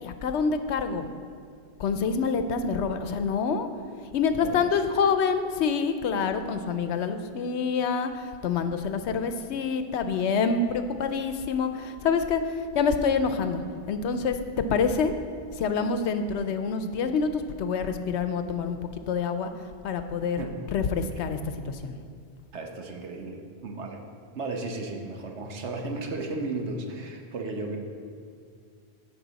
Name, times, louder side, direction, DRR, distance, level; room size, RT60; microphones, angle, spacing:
voice 1, 0.0-1.1 1.8-3.7 4.1-15.1 15.5-18.8 19.1-19.5 19.8-20.4 20.7-21.4 21.6-22.0, left 5 dB, 85° left, 9 dB, 0.9 m, -27 dB
voice 2, 4.3-4.7 20.4-20.5 22.5-24.1 24.3-27.8, right 3 dB, 90° right, 3 dB, 1.3 m, -34 dB
15.0 x 5.3 x 4.0 m, 2.2 s
omnidirectional pair, 1.1 m